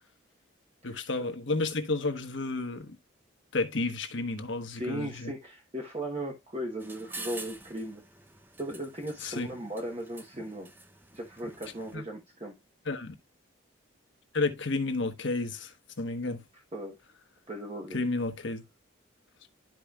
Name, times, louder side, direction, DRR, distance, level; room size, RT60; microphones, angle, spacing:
voice 1, 0.8-3.0 3.5-5.3 9.2-9.5 11.9-12.0 12.8-13.1 14.3-16.4 17.9-18.6, left 3 dB, 65° left, 1.2 m, -31 dB
voice 2, 4.7-8.0 8.6-10.7 11.1-12.5 16.7-17.0 17.5-18.0, right 1 dB, 30° right, 1.1 m, -37 dB
sound 1, 6.8-12.0, right 2 dB, 10° right, 0.6 m, -47 dB
12.0 x 4.9 x 2.4 m
head